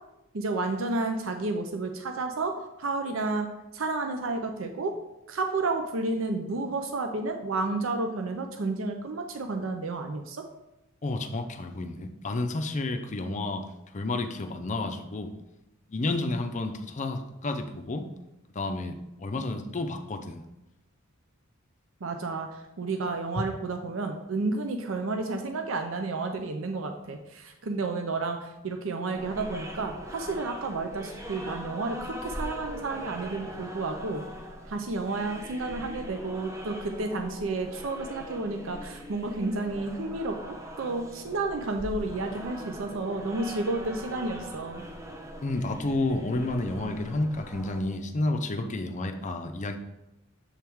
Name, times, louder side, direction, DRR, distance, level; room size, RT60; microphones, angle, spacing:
voice 1, 0.3-4.9 5.3-10.4 22.0-22.5 22.8-34.2 34.6-44.9, right 3 dB, 65° right, 5 dB, 0.6 m, -31 dB
voice 2, 11.0-13.7 13.9-15.3 15.9-18.1 18.5-20.4 45.4-49.8, left 2 dB, 35° left, 6 dB, 0.5 m, -31 dB
sound 1, 29.1-47.8, equal, 15° right, 0.6 m, -41 dB
7.1 x 3.6 x 4.5 m, 0.92 s
head